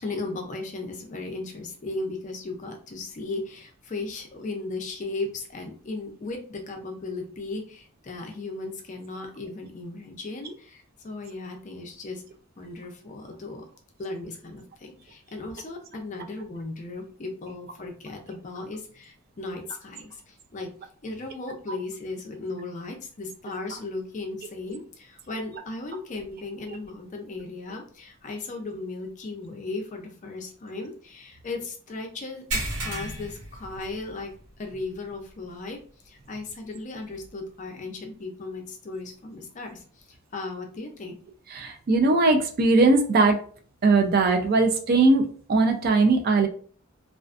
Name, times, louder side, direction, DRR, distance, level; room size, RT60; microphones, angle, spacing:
voice 1, 0.0-12.2 12.6-13.6 14.0-20.7 21.0-32.4 32.8-34.3 34.6-35.8 36.0-40.0 40.3-41.2, left 3 dB, 35° left, 3 dB, 0.4 m, -36 dB
sound 1, 32.5-34.4 34.7-34.9 35.4-35.5 37.2-37.3, right 2 dB, 90° right, 1.1 m, -33 dB
voice 2, 41.5-43.4 43.8-46.5, right 3 dB, 45° right, 4 dB, 0.3 m, -20 dB
2.4 x 2.2 x 2.4 m, 0.43 s
head